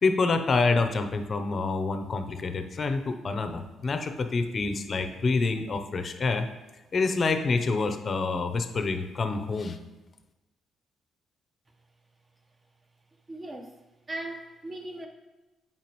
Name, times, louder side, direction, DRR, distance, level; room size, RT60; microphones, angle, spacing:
voice 1, 0.0-6.5 6.9-9.8, left 3 dB, 40° left, 8 dB, 0.7 m, -27 dB
voice 2, 13.3-13.7 14.1-15.1, right 1 dB, 25° right, 3 dB, 1.0 m, -38 dB
9.2 x 4.5 x 3.1 m, 1.1 s
cardioid pair, 90°, 0 cm